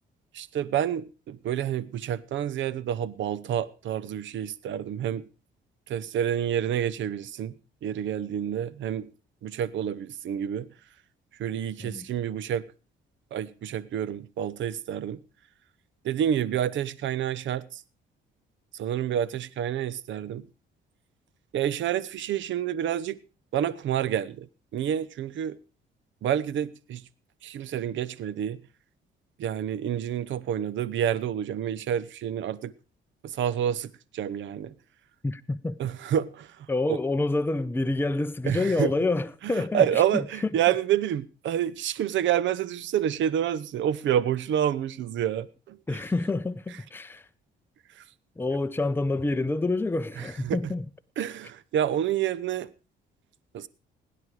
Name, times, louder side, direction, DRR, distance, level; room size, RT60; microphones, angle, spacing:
voice 1, 0.3-5.2 5.9-7.5 7.8-9.1 9.4-10.7 11.4-12.7 13.3-15.2 16.0-17.8 18.7-20.5 21.5-23.2 23.5-24.5 24.7-25.6 26.2-27.0 27.4-28.6 29.4-32.7 33.2-34.7 35.8-37.0 38.4-38.9 39.7-46.0 48.0-48.1 50.2-50.6 51.2-52.7 53.5-53.7, right 10 dB, 70° right, 0.8 m, -28 dB
voice 2, 35.2-35.8 36.7-40.2 45.9-47.3 48.4-50.8, left 2 dB, 10° left, 0.7 m, -28 dB
17.0 x 10.0 x 4.8 m
cardioid pair, 90°, 20 cm